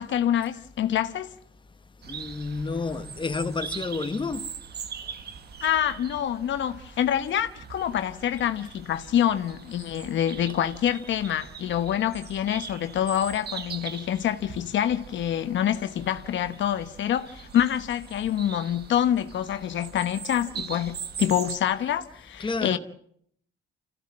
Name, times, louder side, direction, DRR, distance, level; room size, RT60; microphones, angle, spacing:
voice 1, 0.0-1.3 5.6-22.8, left 10 dB, 70° left, 1.1 m, -26 dB
sound 1, 2.0-21.6, right 7 dB, 55° right, 1.5 m, -41 dB
voice 2, 2.1-4.5 22.4-22.8, left 4 dB, 25° left, 1.5 m, -30 dB
25.5 x 15.5 x 8.7 m
cardioid pair, 90°, 20 cm